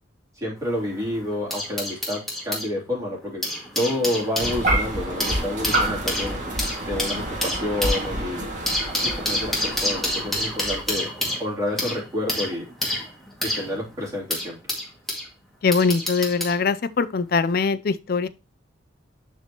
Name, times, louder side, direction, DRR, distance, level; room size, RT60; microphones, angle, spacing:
voice 1, 0.3-3.4 3.7-6.4 6.9-8.4 9.0-11.1 11.4-12.6 13.4-14.6, left 1 dB, 15° right, 3.2 m, -29 dB
sound 1, 0.6-2.7 3.2-15.3 15.7-16.6 17.5-17.7, left 1 dB, ahead, 2.0 m, -29 dB
sound 2, 4.4-10.9, right 1 dB, 40° right, 2.0 m, -28 dB
voice 2, 15.6-18.3, left 4 dB, 50° left, 0.4 m, -22 dB
11.0 x 4.6 x 2.9 m
head